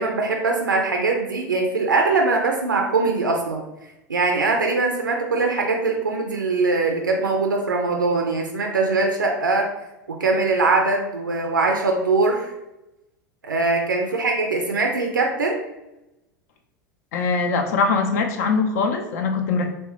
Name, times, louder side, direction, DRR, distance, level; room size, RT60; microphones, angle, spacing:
voice 1, 0.0-3.6 4.1-9.7 10.1-12.5 13.4-15.6, right 3 dB, 80° right, 2 dB, 0.4 m, -22 dB
voice 2, 17.1-19.7, left 4 dB, 55° left, 4 dB, 0.4 m, -22 dB
3.1 x 2.1 x 2.8 m, 0.91 s
figure-of-eight pair, 85°, 11 cm